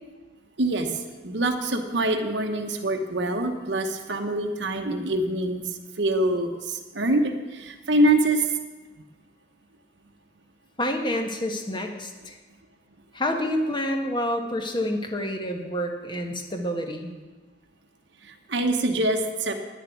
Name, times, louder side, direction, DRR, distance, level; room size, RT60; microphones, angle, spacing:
voice 1, 0.6-8.5 18.2-19.6, right 1 dB, 65° right, 4 dB, 1.0 m, -25 dB
voice 2, 10.8-12.4 13.1-17.1, left 1 dB, 25° left, 4 dB, 1.3 m, -28 dB
10.5 x 6.9 x 9.2 m, 1.3 s
head